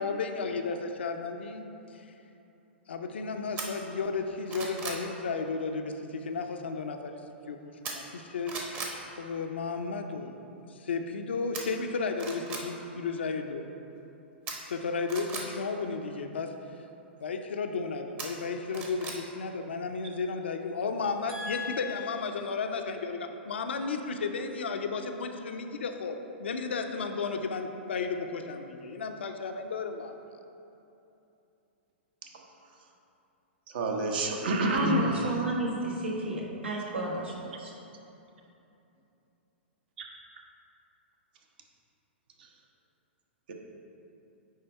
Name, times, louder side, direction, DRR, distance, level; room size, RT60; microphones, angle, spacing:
voice 1, 0.0-1.6 1.9-2.1 2.9-7.2 7.5-7.6 7.9-8.5 9.1-10.4 10.7-13.7 14.7-16.5 17.2-30.2, left 4 dB, 70° left, 5 dB, 0.6 m, -33 dB
sound 1, 3.6-3.7 4.2-5.0 7.8-8.2 8.5-9.0 11.5-11.6 12.1-12.6 14.5-15.4 18.2-19.2 19.6-19.7, right 4 dB, 30° right, 1.1 m, -37 dB
voice 2, 21.3-21.9 34.6-37.7, right 1 dB, 75° right, -4 dB, 1.5 m, -32 dB
voice 3, 33.7-35.3 42.4-42.5 43.5-43.6, right 2 dB, 60° right, 1 dB, 1.0 m, -28 dB
9.4 x 3.4 x 4.4 m, 2.8 s
figure-of-eight pair, 105°, 6 cm